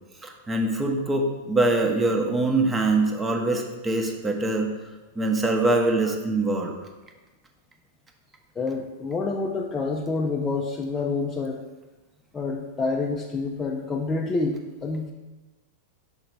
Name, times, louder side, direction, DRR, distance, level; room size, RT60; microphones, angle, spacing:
voice 1, 0.2-4.7 5.1-6.7, right 2 dB, 15° right, 3 dB, 0.9 m, -23 dB
voice 2, 8.6-11.6 12.3-14.6 14.8-15.1, left 3 dB, 20° left, -2 dB, 0.6 m, -27 dB
5.5 x 3.8 x 4.5 m, 1.2 s
hypercardioid pair, 100°, 0 cm